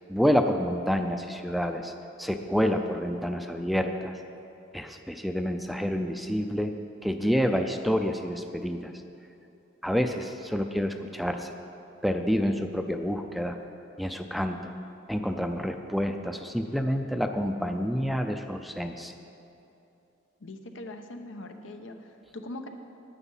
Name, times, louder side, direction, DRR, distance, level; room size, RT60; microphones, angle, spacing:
voice 1, 0.1-1.9 2.2-4.1 4.7-6.7 7.0-8.9 9.8-11.5 12.0-13.6 14.0-14.7 15.1-19.1, equal, ahead, 6 dB, 0.4 m, -28 dB
voice 2, 20.4-22.7, left 1 dB, 85° left, 6 dB, 0.8 m, -41 dB
9.9 x 9.0 x 5.5 m, 2.8 s
head